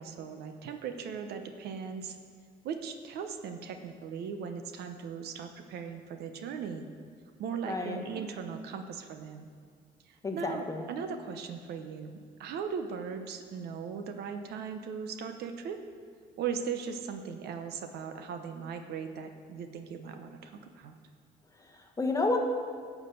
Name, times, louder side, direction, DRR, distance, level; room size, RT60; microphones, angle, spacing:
voice 1, 0.0-2.2 2.6-6.9 7.4-9.5 10.1-15.8 16.4-20.9, right 6 dB, 75° right, 7 dB, 0.9 m, -38 dB
voice 2, 7.6-8.0 10.2-10.9 21.6-22.4, left 3 dB, 20° left, 2 dB, 1.3 m, -31 dB
12.0 x 4.9 x 8.0 m, 2.2 s
cardioid pair, 110°, 17 cm